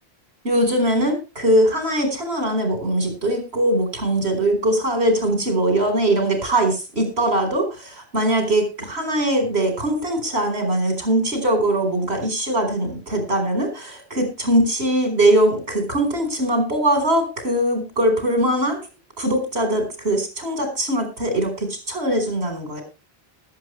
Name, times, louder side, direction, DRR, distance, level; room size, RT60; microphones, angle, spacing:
voice 1, 0.4-18.8 19.2-22.8, right 1 dB, 85° right, 5 dB, 5.0 m, -21 dB
20.5 x 8.4 x 3.2 m, 0.29 s
omnidirectional pair, 1.0 m